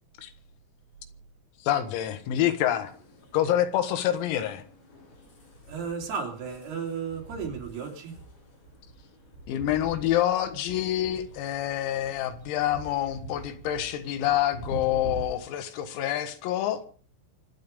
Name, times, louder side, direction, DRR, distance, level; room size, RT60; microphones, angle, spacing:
voice 1, 1.6-2.9 3.3-4.6 9.5-16.8, left 12 dB, 85° left, 4.2 m, -27 dB
sound 1, 2.8-15.2, right 3 dB, 50° left, 6.7 m, -46 dB
voice 2, 5.7-8.2, right 6 dB, 55° right, 4.7 m, -34 dB
25.5 x 8.8 x 5.3 m
omnidirectional pair, 5.9 m